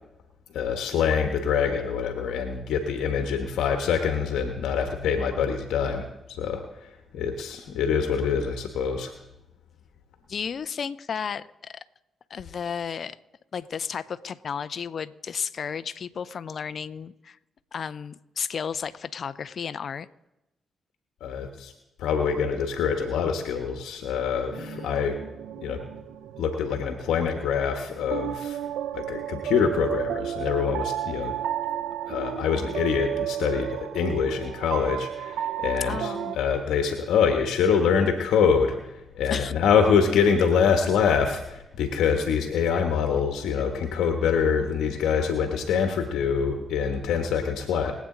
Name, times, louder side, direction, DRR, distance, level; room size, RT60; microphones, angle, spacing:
voice 1, 0.5-9.1 21.2-21.7 22.0-25.2 25.6-25.8 26.4-28.6 28.9-31.3 32.1-47.9, left 6 dB, 75° left, 5 dB, 1.2 m, -25 dB
voice 2, 10.3-11.7 12.3-13.2 13.5-17.4 17.7-20.1 24.6-25.1 35.9-36.4 39.3-39.5, left 7 dB, 55° left, 13 dB, 0.6 m, -33 dB
sound 1, 24.5-36.4, right 11 dB, 75° right, 0.6 m, -33 dB
22.0 x 8.5 x 3.8 m, 0.92 s
hypercardioid pair, 40°, 0 cm